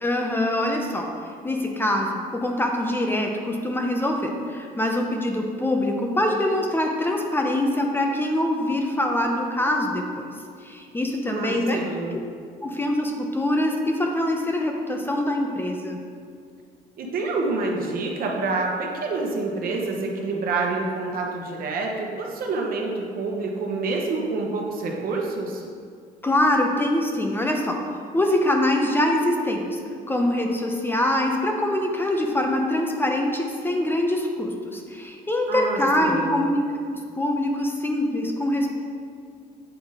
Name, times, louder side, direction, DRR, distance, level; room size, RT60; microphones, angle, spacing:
voice 1, 0.0-10.3 10.6-11.8 12.1-12.2 12.6-16.0 26.2-29.8 30.1-36.6 37.2-38.7, left 1 dB, 15° left, 2 dB, 0.6 m, -24 dB
voice 2, 11.3-12.2 17.0-25.6 35.5-36.4, right 3 dB, 60° right, 0 dB, 1.0 m, -27 dB
7.9 x 3.7 x 4.0 m, 2.2 s
cardioid pair, 110°, 17 cm